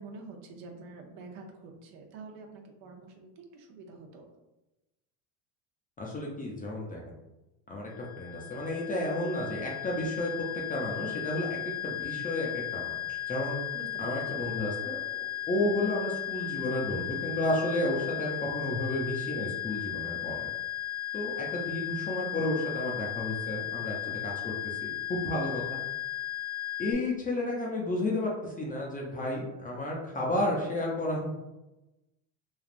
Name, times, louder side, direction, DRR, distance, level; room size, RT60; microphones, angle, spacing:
voice 1, 0.0-4.3 13.7-14.6, right 3 dB, 65° right, 3 dB, 0.7 m, -47 dB
voice 2, 6.0-7.1 7.7-13.6 14.0-20.5 21.1-24.0 24.2-25.8 26.8-31.3, left 1 dB, 20° left, -2 dB, 0.4 m, -32 dB
sound 1, 7.9-26.9, left 14 dB, 50° left, 0.8 m, -36 dB
3.3 x 2.4 x 2.4 m, 1.0 s
supercardioid pair, 110°, 48 cm